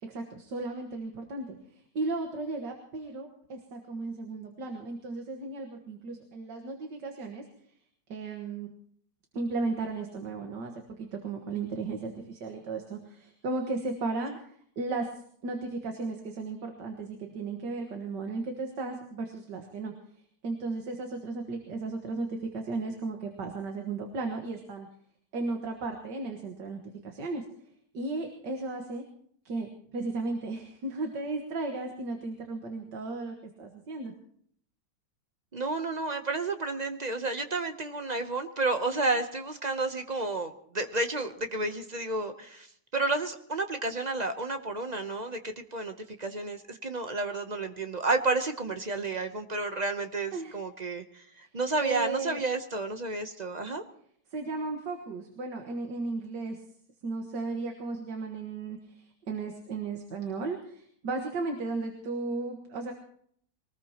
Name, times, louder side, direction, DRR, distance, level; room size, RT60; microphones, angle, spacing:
voice 1, 0.0-1.6 2.0-7.4 8.1-8.7 9.3-10.7 11.0-15.1 15.4-19.9 20.4-24.9 25.3-27.4 27.9-29.0 29.5-29.7 29.9-34.1 50.3-50.6 51.4-51.5 51.8-52.4 54.3-56.6 57.0-62.9, right 3 dB, 80° right, 3 dB, 2.2 m, -35 dB
voice 2, 35.5-42.7 42.9-53.8, right 3 dB, 40° right, 7 dB, 0.6 m, -31 dB
23.5 x 19.5 x 2.9 m, 0.63 s
omnidirectional pair, 1.9 m